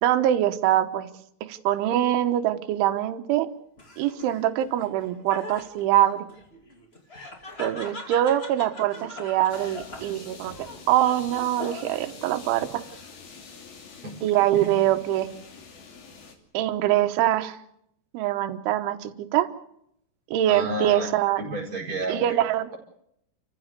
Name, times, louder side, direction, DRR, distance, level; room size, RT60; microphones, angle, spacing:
voice 1, 0.0-1.1 1.4-3.5 4.0-6.3 7.6-12.8 14.2-15.3 16.5-17.6 18.1-19.5 20.3-21.4 22.1-22.8, right 12 dB, 75° right, 8 dB, 3.5 m, -24 dB
Laughter, 3.8-12.2 12.6-13.3, left 1 dB, 75° left, 0.5 m, -42 dB
sound 1, 9.5-16.4, left 5 dB, 50° left, 4.3 m, -46 dB
voice 2, 20.5-21.1 21.4-22.4, right 1 dB, 25° right, 0 dB, 5.1 m, -31 dB
30.0 x 15.0 x 6.7 m, 0.75 s
omnidirectional pair, 5.8 m